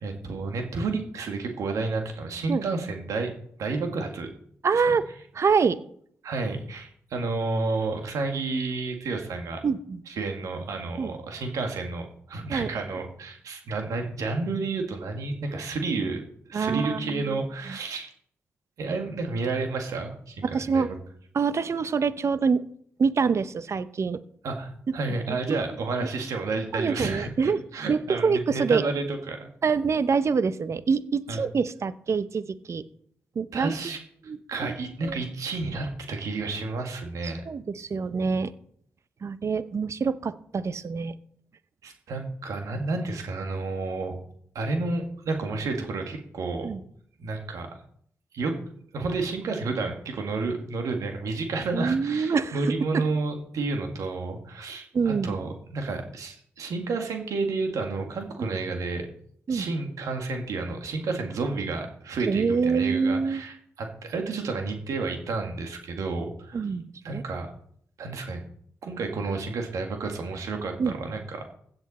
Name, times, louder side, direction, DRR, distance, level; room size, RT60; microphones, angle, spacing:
voice 1, 0.0-3.3 3.6-4.3 4.7-4.9 6.2-9.6 10.1-16.2 16.5-18.1 18.8-21.0 24.4-29.5 31.3-31.4 33.5-34.0 34.5-37.4 41.8-44.2 44.5-46.8 47.2-47.7 48.3-48.6 48.9-59.1 59.5-66.6 67.0-67.5 68.0-68.4 68.8-71.4, right 3 dB, 75° right, 4 dB, 2.0 m, -31 dB
voice 2, 4.6-5.0 5.3-5.8 9.6-10.0 11.0-11.1 12.5-12.7 16.5-17.2 20.4-20.9 21.3-22.6 23.0-24.2 26.7-27.6 27.9-28.8 29.6-32.8 33.3-33.8 34.3-34.7 35.0-35.2 37.2-38.5 39.2-41.1 46.6-46.8 51.7-53.0 54.9-55.3 58.4-58.5 59.5-59.7 62.3-63.4 66.5-67.2 70.8-70.9, right 5 dB, 55° right, 14 dB, 0.8 m, -26 dB
15.5 x 7.9 x 4.3 m, 0.64 s
supercardioid pair, 45°, 6 cm